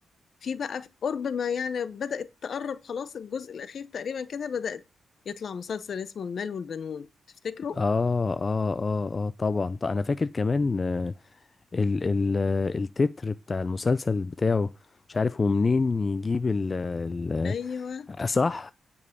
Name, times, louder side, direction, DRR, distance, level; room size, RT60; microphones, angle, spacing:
voice 1, 0.4-4.8 5.2-7.1 7.4-7.8 17.4-18.1, left 6 dB, 60° left, 0.8 m, -33 dB
voice 2, 7.8-11.1 11.7-14.7 15.1-17.5 18.2-18.7, left 4 dB, 35° left, 0.4 m, -26 dB
9.6 x 5.4 x 6.5 m
cardioid pair, 90°, 0 cm